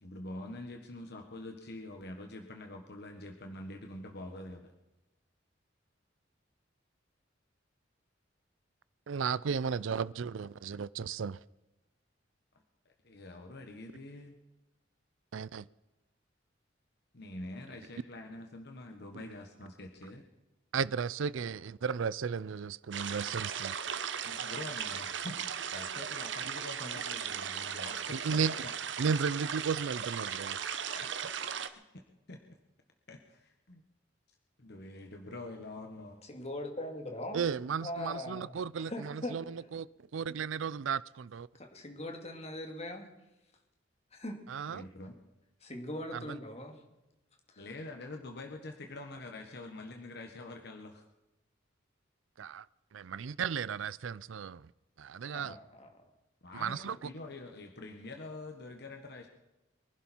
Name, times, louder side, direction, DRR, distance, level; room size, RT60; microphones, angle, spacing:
voice 1, 0.0-4.7 12.8-14.4 17.1-20.2 24.2-28.4 30.9-31.3 31.6-32.0 32.3-32.4 33.1-33.8 34.6-36.2 44.7-45.1 47.6-51.0 56.4-59.3, left 2 dB, 60° left, 1.5 m, -45 dB
voice 2, 9.1-11.4 15.3-15.6 20.7-23.8 26.8-26.9 28.1-28.5 29.0-30.6 37.3-39.9 40.1-41.5 44.5-44.8 46.1-46.4 52.4-52.7 52.9-54.7 55.0-55.6 56.5-57.1, right 6 dB, 85° right, 0.4 m, -34 dB
sound 1, 22.9-31.7, right 8 dB, 65° right, 1.0 m, -37 dB
voice 3, 36.3-37.5 37.8-38.5 38.8-39.4 41.5-43.1 44.1-44.4 45.6-46.8 47.5-47.7 55.3-56.0, left 1 dB, 35° left, 2.5 m, -41 dB
24.5 x 11.5 x 4.5 m
head